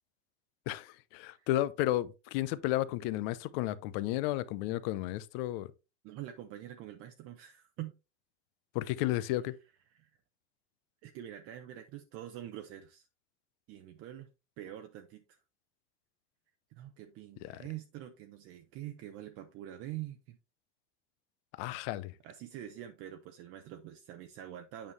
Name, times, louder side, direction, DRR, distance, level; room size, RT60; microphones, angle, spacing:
voice 1, 0.7-5.7 8.7-9.5 17.5-17.6 21.6-22.1, left 15 dB, 55° left, 0.7 m, -33 dB
voice 2, 6.0-7.9 9.9-10.1 11.0-13.1 13.7-14.3 14.6-15.4 16.7-20.4 22.2-24.9, right 12 dB, 45° right, 0.8 m, -45 dB
8.6 x 5.5 x 3.1 m
supercardioid pair, 140°, 34 cm